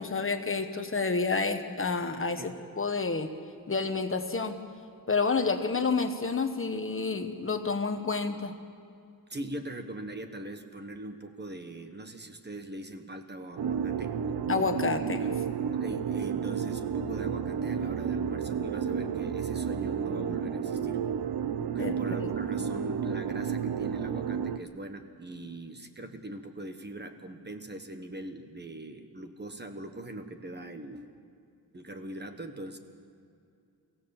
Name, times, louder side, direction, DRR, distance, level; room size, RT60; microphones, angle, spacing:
voice 1, 0.0-3.3 3.7-4.5 5.1-8.5 14.5-15.3 21.8-21.9, left 4 dB, 35° left, 7 dB, 1.2 m, -29 dB
voice 2, 9.3-14.1 15.7-21.0 21.7-31.1 31.7-32.8, right 1 dB, 30° right, 6 dB, 1.3 m, -41 dB
sound 1, 13.6-24.6, right 7 dB, 80° right, 0.8 m, -31 dB
23.5 x 16.0 x 7.2 m, 2.4 s
wide cardioid pair, 135°, 37 cm